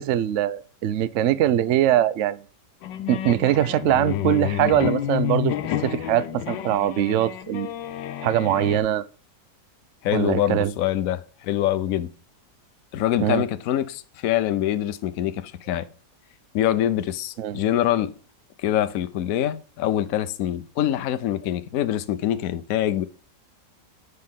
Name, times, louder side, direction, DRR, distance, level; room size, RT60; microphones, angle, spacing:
voice 1, 0.0-2.4 3.1-7.7 8.2-9.0 10.1-10.7 13.2-13.4 17.4-17.6, right 12 dB, 75° right, 0.7 m, -22 dB
sound 1, 2.8-8.8, left 12 dB, 85° left, 1.4 m, -29 dB
voice 2, 10.0-12.1 12.9-15.9 16.5-18.1 18.6-23.0, left 12 dB, 60° left, 1.0 m, -24 dB
9.7 x 5.4 x 3.6 m
omnidirectional pair, 1.9 m